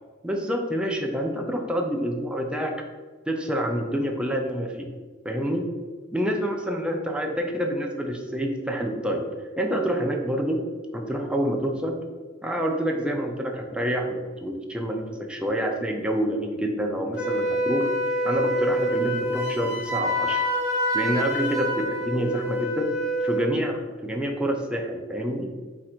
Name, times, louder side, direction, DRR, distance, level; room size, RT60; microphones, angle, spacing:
voice 1, 0.2-2.7 3.3-4.9 5.2-5.7 6.1-9.2 9.6-10.6 10.9-12.0 12.4-17.9 18.2-20.5 20.9-22.9 23.2-25.5, equal, 5° right, 1 dB, 0.4 m, -27 dB
Wind instrument woodwind instrument, 17.2-23.5, equal, 55° left, 1.2 m, -26 dB
4.2 x 2.5 x 4.3 m, 1.4 s
head